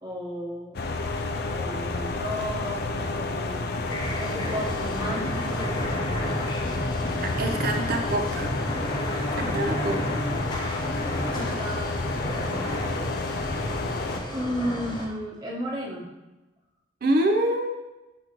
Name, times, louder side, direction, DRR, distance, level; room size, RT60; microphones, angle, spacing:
voice 1, 0.0-0.8 1.5-3.7 4.2-5.9 9.4-9.5 11.3-12.0 14.3-16.1, equal, 20° right, -4 dB, 1.2 m, -33 dB
sound 1, 0.7-14.2, left 3 dB, 55° left, 0.4 m, -30 dB
sound 2, 3.9-15.1, equal, 25° left, 0.8 m, -32 dB
voice 2, 7.4-8.5 9.4-10.0 17.0-17.7, right 1 dB, 50° right, 4 dB, 0.5 m, -25 dB
6.2 x 5.1 x 3.0 m, 1.1 s
head